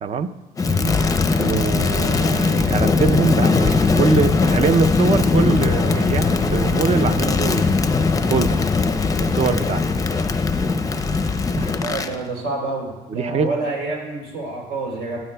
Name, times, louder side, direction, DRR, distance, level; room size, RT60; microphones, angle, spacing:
voice 1, 0.0-0.3 1.4-7.7 8.3-8.6 9.2-9.8 11.6-11.7 13.1-13.5, right 5 dB, 40° right, 10 dB, 0.5 m, -23 dB
Crackle, 0.6-12.1, left 4 dB, 20° left, 0.5 m, -19 dB
voice 2, 11.8-15.2, right 2 dB, 80° right, -1 dB, 3.4 m, -28 dB
13.5 x 8.8 x 2.2 m, 1.1 s
cardioid pair, 110°, 17 cm